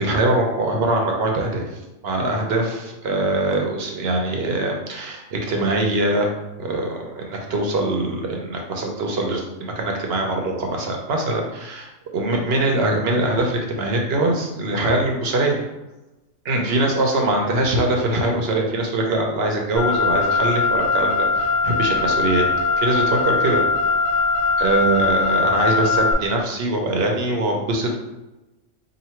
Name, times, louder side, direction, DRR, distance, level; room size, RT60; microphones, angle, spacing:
voice 1, 0.0-1.7 2.0-6.3 6.6-11.8 12.1-15.6 16.5-22.5 22.8-23.6 24.6-28.0, right 2 dB, 60° right, 1 dB, 0.8 m, -22 dB
Car, 19.8-26.1, left 4 dB, 45° left, 0.7 m, -21 dB
2.9 x 2.8 x 4.3 m, 1.0 s
omnidirectional pair, 1.4 m